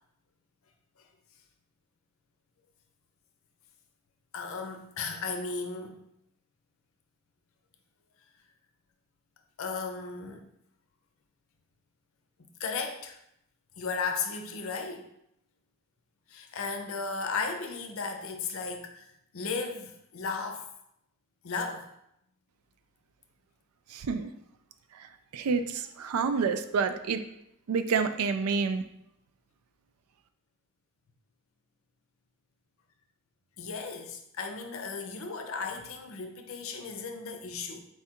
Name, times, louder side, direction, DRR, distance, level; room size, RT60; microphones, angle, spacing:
voice 1, 4.3-6.1 9.6-10.4 12.6-13.2 13.8-15.1 16.3-20.7 21.4-21.9 25.4-25.5 33.6-37.8, left 4 dB, 70° left, 5 dB, 0.6 m, -35 dB
voice 2, 23.9-24.3 25.0-25.1 25.3-27.2 27.7-28.8, right 5 dB, 85° right, 10 dB, 0.4 m, -28 dB
4.4 x 2.4 x 4.4 m, 0.79 s
head